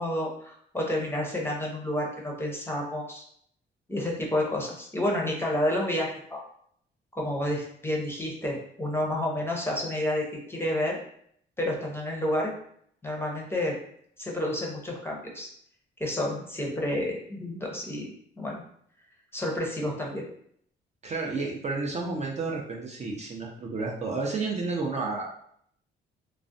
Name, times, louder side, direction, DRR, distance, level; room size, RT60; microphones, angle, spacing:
voice 1, 0.0-3.2 3.9-6.4 7.1-11.0 11.6-12.5 13.0-13.8 14.2-15.5 16.0-18.1 18.4-18.6 19.3-20.2, left 1 dB, 10° left, -2 dB, 0.6 m, -30 dB
voice 2, 21.0-25.5, right 3 dB, 35° right, -1 dB, 0.5 m, -31 dB
2.4 x 2.1 x 2.5 m, 0.65 s
cardioid pair, 90°, 20 cm